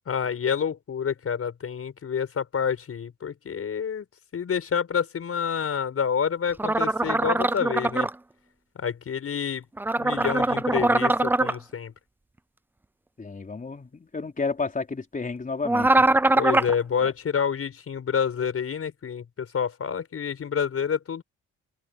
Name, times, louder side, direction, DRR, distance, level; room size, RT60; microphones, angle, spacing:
voice 1, 0.1-4.1 4.3-8.1 8.8-9.7 10.0-11.9 16.4-21.2, left 7 dB, 50° left, 6.0 m, -28 dB
sound 1, 6.6-8.1 9.8-11.5 15.6-16.7, right 2 dB, 5° right, 0.4 m, -22 dB
voice 2, 13.2-16.1 17.0-17.1, left 4 dB, 25° left, 4.4 m, -31 dB
open air
cardioid pair, 90°, 30 cm